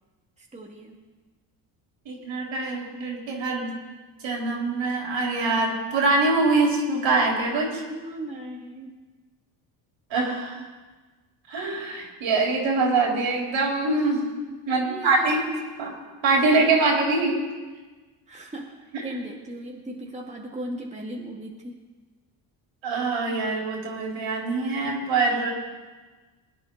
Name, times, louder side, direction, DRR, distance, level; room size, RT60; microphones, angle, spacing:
voice 1, 0.4-1.0 7.9-9.0 14.7-15.3 16.3-17.3 18.3-18.7 19.0-21.7, right 1 dB, 15° right, -1 dB, 2.0 m, -36 dB
voice 2, 2.1-3.7 4.2-7.8 10.1-10.6 11.5-14.3 14.7-15.5 15.8-16.0 16.2-17.4 18.9-19.0 22.8-25.5, right 3 dB, 65° right, -1 dB, 4.1 m, -24 dB
21.5 x 9.6 x 4.0 m, 1.3 s
supercardioid pair, 80°, 49 cm